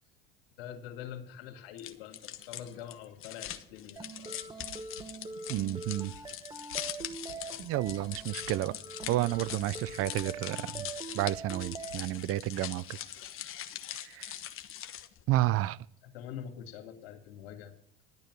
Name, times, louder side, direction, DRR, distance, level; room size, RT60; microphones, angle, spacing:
voice 1, 0.6-4.6 7.3-7.6 16.0-17.7, left 9 dB, 75° left, 2.3 m, -45 dB
sound 1, 1.8-15.2, left 11 dB, 45° left, 1.2 m, -42 dB
sound 2, 4.0-12.0, right 4 dB, 15° right, 1.2 m, -44 dB
sound 3, 4.7-12.0, right 3 dB, 85° right, 4.1 m, -54 dB
voice 2, 5.5-6.1 7.6-8.7 9.1-12.8 14.0-14.4 15.3-15.8, right 15 dB, 50° right, 0.5 m, -31 dB
12.0 x 9.1 x 6.2 m
hypercardioid pair, 85°, 30 cm